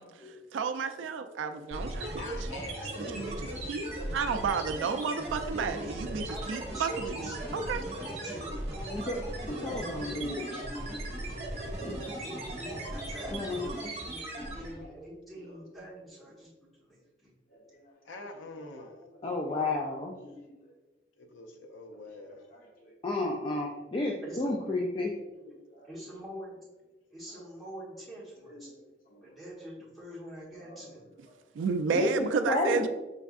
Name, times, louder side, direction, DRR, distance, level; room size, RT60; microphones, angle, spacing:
voice 1, 0.0-0.3 1.0-1.6 3.9-4.1 10.5-10.6 14.8-14.9 15.3-15.4 17.5-17.9 18.2-20.7 22.5-22.9 25.4-25.9 27.3-27.4 28.4-28.8 29.1-29.2 30.6-30.9 31.6-31.7, left 1 dB, 50° left, -2 dB, 1.0 m, -54 dB
voice 2, 0.5-2.5 2.8-6.2 6.5-7.8 31.6-32.9, right 5 dB, 90° right, 8 dB, 0.3 m, -32 dB
sound 1, 1.7-14.9, right 1 dB, 35° right, 0.9 m, -37 dB
voice 3, 2.2-3.6 18.1-19.0 21.3-22.4, left 2 dB, 90° left, 4 dB, 0.5 m, -45 dB
voice 4, 6.3-9.2 9.7-10.4 11.5-17.3 24.2-24.6 25.8-26.5 27.1-28.7 29.2-31.0, right 1 dB, ahead, -8 dB, 1.2 m, -46 dB
voice 5, 9.5-10.6 11.8-12.0 13.3-13.6 19.2-20.1 23.0-25.1 32.0-32.9, left 2 dB, 25° left, -1 dB, 0.3 m, -31 dB
5.2 x 3.4 x 2.4 m, 1.1 s
head